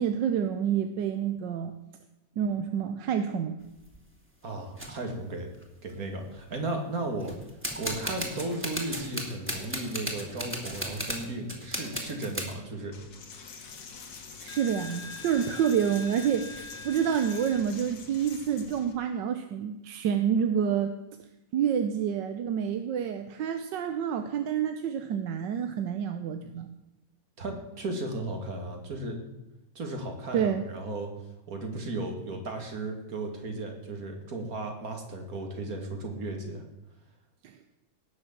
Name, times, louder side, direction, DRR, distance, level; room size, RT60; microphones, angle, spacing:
voice 1, 0.0-1.7 2.4-3.6 14.4-20.9 21.5-26.7 30.3-30.6 37.4-37.6, right 8 dB, 90° right, 8 dB, 1.5 m, -28 dB
sound 1, 3.6-4.0 4.8-4.9 5.6-5.7 5.9-6.4 7.2-12.5, equal, 5° right, 2.3 m, -35 dB
voice 2, 4.4-5.5 5.8-7.4 7.8-13.0 27.4-29.2 29.7-31.1 31.5-36.6, right 2 dB, 55° right, 3 dB, 2.6 m, -35 dB
Coin (dropping), 12.9-18.9, left 4 dB, 90° left, 2.3 m, -43 dB
18.5 x 6.5 x 7.4 m, 0.97 s
omnidirectional pair, 1.9 m